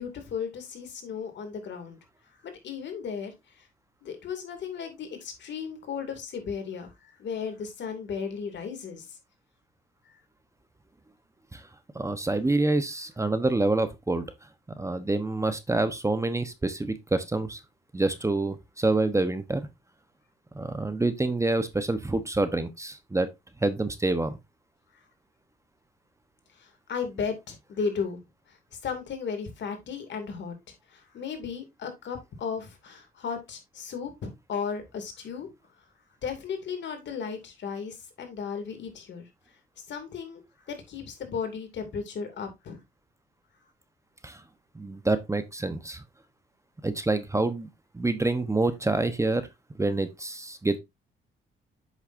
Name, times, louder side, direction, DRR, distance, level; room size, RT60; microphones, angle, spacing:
voice 1, 0.0-2.0 2.4-3.7 4.0-9.2 10.1-10.2 26.6-28.2 28.5-35.5 36.2-39.3 39.9-40.4 40.7-42.8, left 6 dB, 65° left, 2.5 m, -35 dB
voice 2, 11.9-14.2 14.8-17.6 17.9-19.6 20.5-23.3 23.6-24.4 44.2-44.4 44.7-46.0 46.8-49.4 49.8-50.8, right 2 dB, 15° right, 1.0 m, -27 dB
8.0 x 6.5 x 2.6 m
cardioid pair, 90°, 20 cm